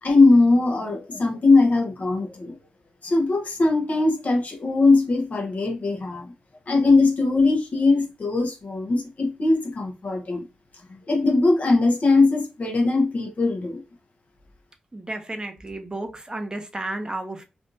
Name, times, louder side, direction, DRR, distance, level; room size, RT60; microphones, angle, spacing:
voice 1, 0.0-2.5 3.0-6.3 6.7-10.4 11.1-13.8, left 3 dB, 50° left, 1.0 m, -20 dB
voice 2, 14.9-17.4, right 2 dB, 25° right, 0.7 m, -32 dB
3.4 x 2.5 x 2.7 m
cardioid pair, 50°, 3 cm